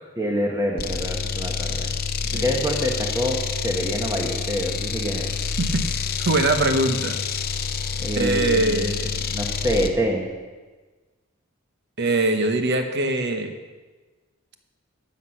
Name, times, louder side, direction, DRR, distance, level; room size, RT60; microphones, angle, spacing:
voice 1, 0.2-1.9 2.3-3.4 3.6-5.3 8.0-8.8 9.3-10.3, equal, 15° right, 0 dB, 1.0 m, -26 dB
sound 1, 0.8-10.0, left 6 dB, 45° left, 0.7 m, -28 dB
voice 2, 6.2-7.2 8.2-9.2 12.0-13.5, right 2 dB, 50° right, 7 dB, 1.0 m, -22 dB
12.0 x 8.1 x 5.8 m, 1.3 s
head